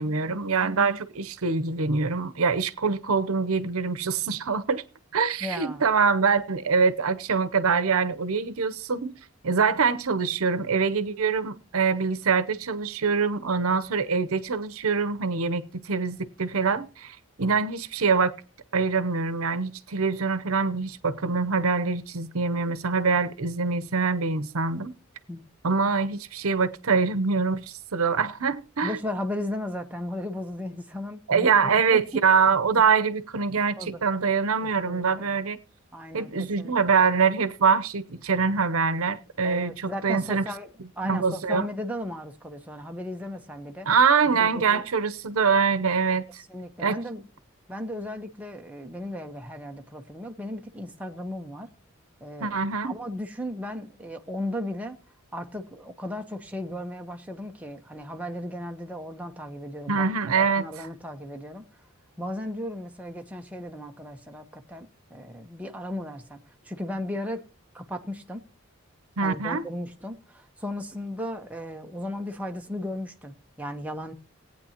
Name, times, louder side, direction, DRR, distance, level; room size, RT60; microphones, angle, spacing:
voice 1, 0.0-4.8 5.1-9.1 9.4-18.3 18.7-24.9 25.6-29.0 31.3-35.6 36.1-40.4 41.0-41.7 43.9-46.4 46.8-47.0 52.4-53.0 59.9-60.7 69.2-69.6, right 5 dB, 85° right, 0.8 m, -24 dB
voice 2, 5.4-5.9 25.3-25.4 28.8-32.2 33.8-34.0 34.6-35.4 35.9-36.8 39.4-43.9 44.2-44.9 46.5-47.3 47.7-51.7 52.2-52.6 52.8-55.0 55.3-60.1 60.4-61.7 62.2-67.4 67.7-68.4 69.2-74.1, left 1 dB, 5° right, 0.9 m, -36 dB
19.0 x 8.9 x 2.9 m
head